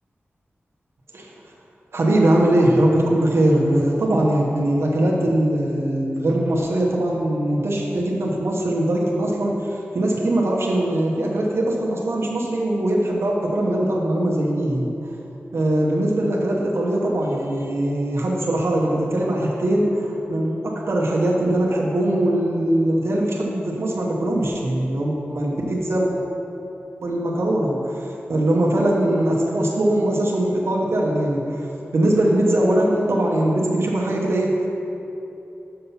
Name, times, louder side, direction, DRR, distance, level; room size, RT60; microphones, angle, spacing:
voice 1, 1.9-14.9 15.5-26.1 27.0-31.7 31.9-34.7, right 1 dB, 75° right, -3 dB, 0.9 m, -21 dB
6.6 x 5.7 x 5.6 m, 3.0 s
wide cardioid pair, 110°, 4 cm